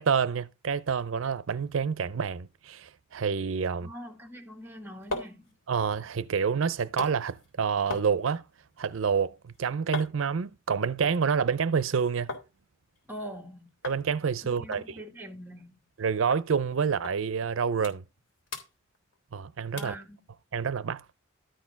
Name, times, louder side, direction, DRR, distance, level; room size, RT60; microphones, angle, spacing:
voice 1, 0.0-3.9 5.7-8.4 8.8-12.3 13.8-15.0 16.0-18.0 19.3-19.9 20.5-21.0, right 6 dB, 80° right, 0.5 m, -28 dB
voice 2, 3.8-5.5 13.1-13.7 14.4-15.8 19.7-20.2, equal, 10° right, 2.0 m, -43 dB
sound 1, 4.6-12.5 12.8-13.5 13.8-14.0 14.3-14.4 14.7-16.0 16.3-16.5 17.0-17.2 17.5-18.2 18.5-19.4 19.8-20.0 20.5-20.6, left 2 dB, 75° left, 3.5 m, -41 dB
12.5 x 4.4 x 5.7 m
head